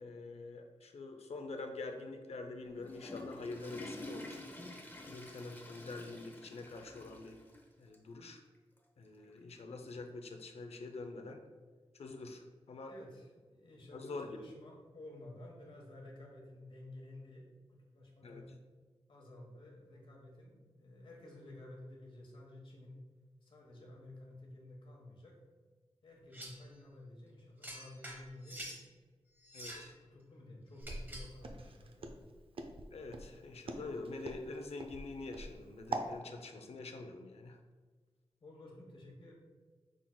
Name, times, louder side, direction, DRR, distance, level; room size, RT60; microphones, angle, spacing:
voice 1, 0.0-4.4 5.0-7.4 7.8-8.4 9.0-11.4 12.0-12.9 13.9-14.4 18.2-18.4 29.5-29.9 32.9-37.6, left 3 dB, 75° left, 5 dB, 0.5 m, -45 dB
Water / Toilet flush, 2.6-7.6 7.9-8.0 8.8-8.9 10.1-10.2, left 1 dB, 20° left, 0.7 m, -49 dB
voice 2, 12.9-18.5 19.1-23.0 23.4-25.4 26.0-28.8 29.7-32.2 38.4-39.4, left 1 dB, 55° left, -2 dB, 1.2 m, -53 dB
sound 1, 26.3-26.7 27.6-28.8 29.4-29.9 30.8-31.4, equal, 20° right, 0.9 m, -47 dB
Walk footsteps, 30.8-36.1, right 3 dB, 60° right, 0.5 m, -43 dB
6.0 x 3.7 x 2.2 m, 1.4 s
wide cardioid pair, 115°, 11 cm